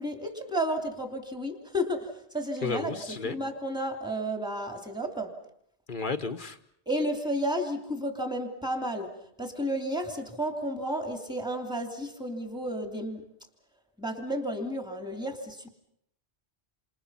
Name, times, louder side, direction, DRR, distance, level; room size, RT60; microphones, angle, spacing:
voice 1, 0.0-5.3 6.9-9.1 9.4-13.2 14.0-15.7, equal, 5° right, 5 dB, 3.0 m, -32 dB
voice 2, 2.6-3.3 5.9-6.6, left 4 dB, 50° left, 9 dB, 1.3 m, -32 dB
28.5 x 27.5 x 5.7 m, 0.73 s
omnidirectional pair, 1.1 m